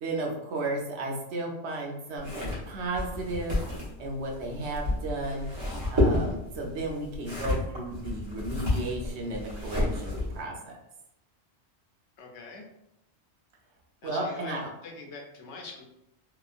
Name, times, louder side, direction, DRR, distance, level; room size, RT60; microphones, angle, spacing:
voice 1, 0.0-3.6 4.0-5.5 5.9-10.7 14.0-14.7, right 2 dB, 70° right, 0 dB, 0.9 m, -34 dB
sound 1, 2.2-10.4, left 1 dB, 25° right, 0.9 m, -31 dB
voice 2, 12.2-12.6 14.0-15.8, left 3 dB, 80° left, 1 dB, 0.9 m, -44 dB
2.9 x 2.2 x 2.4 m, 0.83 s
omnidirectional pair, 1.2 m